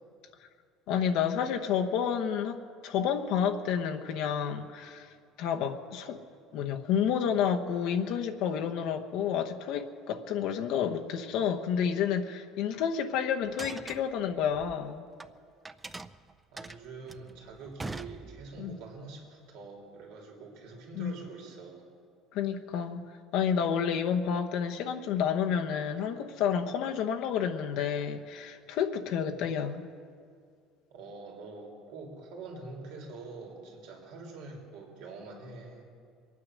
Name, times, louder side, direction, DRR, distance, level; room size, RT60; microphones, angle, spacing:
voice 1, 0.9-6.2 6.5-15.0 18.6-18.7 21.0-21.1 22.3-23.0 23.3-29.8, left 8 dB, 55° left, 4 dB, 1.0 m, -30 dB
sound 1, 13.4-15.3 15.6-18.7, right 3 dB, 10° right, 0.3 m, -43 dB
voice 2, 16.5-21.8 30.9-35.8, right 3 dB, 70° right, -1 dB, 3.3 m, -45 dB
24.0 x 9.5 x 6.3 m, 2.2 s
cardioid pair, 180°, 0 cm